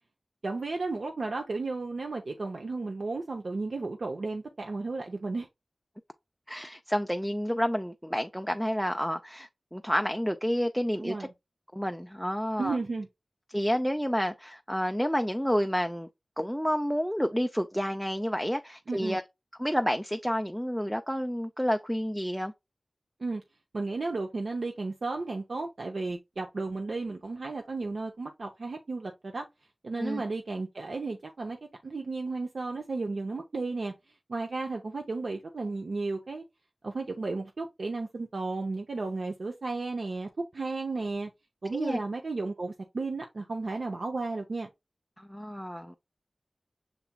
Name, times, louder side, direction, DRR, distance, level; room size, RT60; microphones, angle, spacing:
voice 1, 0.4-5.5 11.0-11.3 12.6-13.1 18.9-19.2 23.2-23.4 23.7-29.5 29.8-31.6 31.8-33.9 34.3-36.4 36.8-41.3 41.6-44.7, right 3 dB, 80° right, 0.6 m, -33 dB
voice 2, 6.5-11.2 11.7-12.8 13.5-16.1 16.4-19.2 19.6-22.5 30.0-30.2 41.7-42.0 45.2-46.0, equal, ahead, 0.4 m, -29 dB
5.9 x 4.0 x 2.3 m
wide cardioid pair, 50°, 0 cm